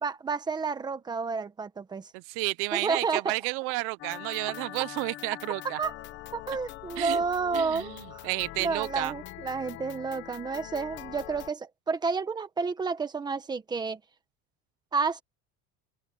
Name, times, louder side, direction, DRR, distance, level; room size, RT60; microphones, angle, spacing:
voice 1, 0.0-2.1 2.7-3.4 5.8-5.9 6.3-8.3 8.6-14.0 14.9-15.2, right 4 dB, 10° right, 1.3 m, -30 dB
voice 2, 2.1-5.8 7.0-7.2 7.5-9.1, right 25 dB, 40° right, 0.4 m, -31 dB
sound 1, 4.0-11.5, left 16 dB, 35° left, 0.9 m, -43 dB
open air
cardioid pair, 180°, 33 cm